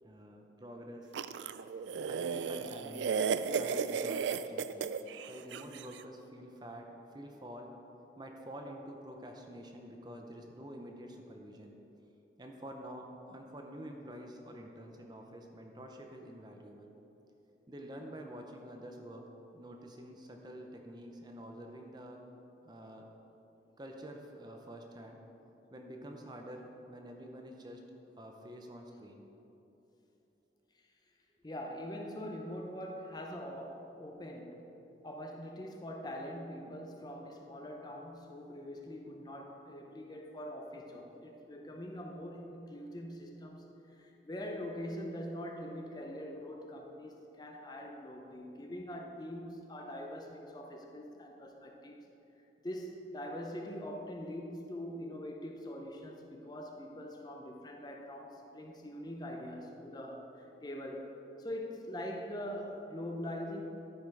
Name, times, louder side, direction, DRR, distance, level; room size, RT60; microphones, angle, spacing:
voice 1, 0.0-1.1 2.0-4.9 5.3-7.7 8.2-11.8 12.4-16.9 17.7-22.2 22.6-23.1 23.8-25.2 25.7-27.8 28.2-29.3, equal, 25° right, 2 dB, 0.7 m, -48 dB
sound 1, 1.1-5.8, right 6 dB, 85° right, 0.3 m, -34 dB
voice 2, 31.4-34.8 35.0-52.0 52.6-60.3 60.6-63.6, equal, 25° left, 1 dB, 0.7 m, -43 dB
13.0 x 5.4 x 4.8 m, 3.0 s
head